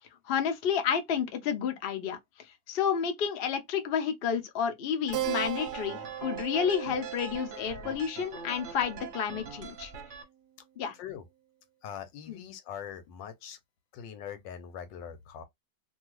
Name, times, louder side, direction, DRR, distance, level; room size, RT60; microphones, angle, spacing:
voice 1, 0.3-2.2 2.7-9.9 10.8-10.9 12.3-12.4, left 7 dB, 70° left, 0.5 m, -30 dB
sound 1, 5.1-10.2, right 4 dB, 50° right, 0.9 m, -43 dB
Keyboard (musical), 5.1-10.1, right 14 dB, 70° right, 1.0 m, -39 dB
voice 2, 10.9-11.2 11.8-13.6 13.9-15.4, left 8 dB, 85° left, 1.4 m, -42 dB
2.7 x 2.6 x 3.0 m
omnidirectional pair, 1.9 m